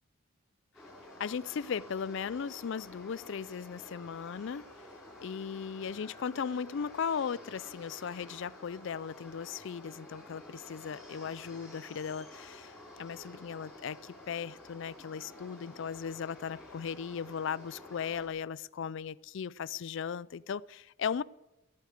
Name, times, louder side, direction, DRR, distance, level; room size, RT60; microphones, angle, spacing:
sound 1, 0.7-18.3, left 1 dB, ahead, 5.4 m, -51 dB
voice 1, 1.2-4.6 5.2-21.2, left 6 dB, 60° left, 0.4 m, -37 dB
15.0 x 8.4 x 8.0 m
head